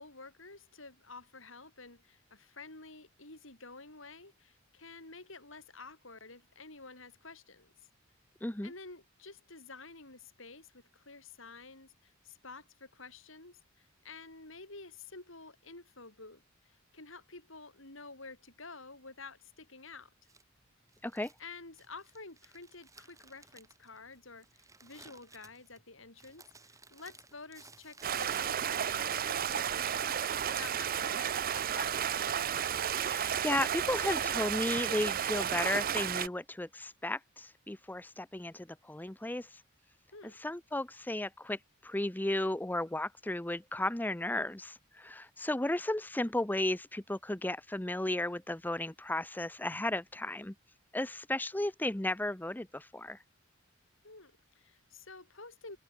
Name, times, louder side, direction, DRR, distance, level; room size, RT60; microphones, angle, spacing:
voice 1, 0.0-7.7 8.6-20.1 21.4-32.0 40.1-40.4 54.0-55.8, left 3 dB, 65° left, 6.5 m, -50 dB
voice 2, 8.4-8.7 21.0-21.3 33.1-39.5 40.4-50.5 50.9-53.2, left 1 dB, 10° left, 0.7 m, -34 dB
Crumpling crinkling, 20.2-28.9, right 3 dB, 15° right, 5.4 m, -58 dB
Stream, 28.0-36.3, right 8 dB, 45° right, 0.6 m, -32 dB
head